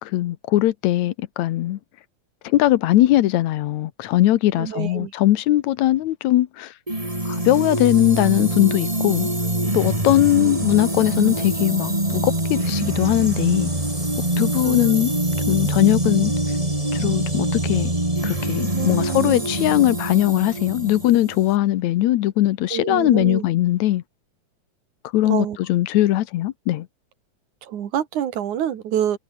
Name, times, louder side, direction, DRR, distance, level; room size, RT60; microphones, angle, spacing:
voice 1, 0.0-1.8 2.4-6.7 7.3-9.3 9.7-13.7 14.4-15.1 15.5-16.3 16.9-17.9 18.2-24.0 25.1-26.9, left 14 dB, 75° left, 2.2 m, -20 dB
voice 2, 4.6-5.1 14.6-15.0 18.7-19.5 22.7-23.4 25.2-25.6 27.6-29.2, right 10 dB, 90° right, 3.3 m, -27 dB
sound 1, 6.9-21.6, right 1 dB, 10° right, 4.0 m, -24 dB
omnidirectional pair, 3.3 m